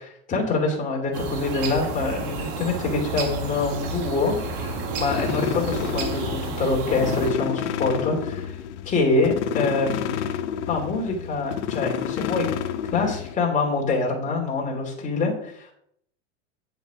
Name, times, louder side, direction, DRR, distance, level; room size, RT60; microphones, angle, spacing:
voice 1, 0.3-8.6 8.8-10.3 10.7-12.5 12.9-15.7, left 3 dB, 20° left, 0 dB, 2.8 m, -25 dB
sound 1, 1.1-7.3, right 4 dB, 55° right, 2.2 m, -31 dB
sound 2, 4.2-13.3, left 9 dB, 85° left, 0.9 m, -30 dB
9.4 x 7.1 x 5.0 m, 0.71 s
supercardioid pair, 150°, 35 cm